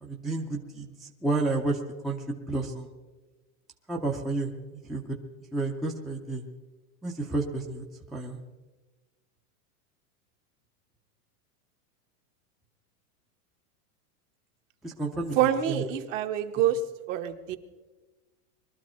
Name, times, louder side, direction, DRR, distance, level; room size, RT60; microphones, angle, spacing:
voice 1, 0.0-2.9 3.9-4.5 4.9-5.2 5.5-6.4 7.0-7.8 8.1-8.4 14.8-15.3 15.7-15.9, right 2 dB, ahead, 0 dB, 0.4 m, -31 dB
voice 2, 15.4-16.8 17.1-17.6, right 10 dB, 60° right, 7 dB, 1.2 m, -26 dB
21.5 x 12.5 x 4.3 m, 1.2 s
supercardioid pair, 150°, 44 cm